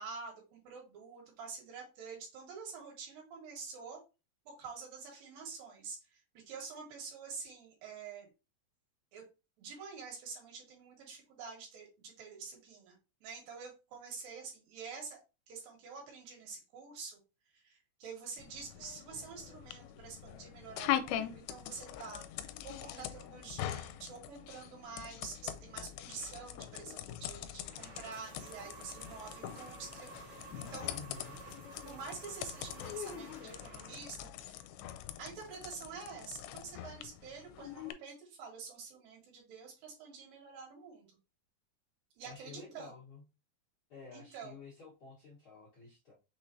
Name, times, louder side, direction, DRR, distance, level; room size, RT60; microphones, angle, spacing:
voice 1, 0.0-4.0 4.5-8.3 9.1-9.2 9.6-13.0 13.2-15.2 15.5-17.2 17.5-31.0 31.9-34.6 35.2-41.1 42.2-42.9 44.1-44.5, right 5 dB, 70° right, 0 dB, 3.0 m, -47 dB
sound 1, 18.4-37.9, left 11 dB, 85° left, 2.4 m, -42 dB
sound 2, 27.7-34.3, right 3 dB, 40° right, 1.5 m, -52 dB
voice 2, 30.9-31.4 42.2-43.2 43.9-46.1, left 5 dB, 55° left, -8 dB, 1.4 m, -51 dB
5.9 x 3.2 x 2.6 m, 0.29 s
omnidirectional pair, 4.2 m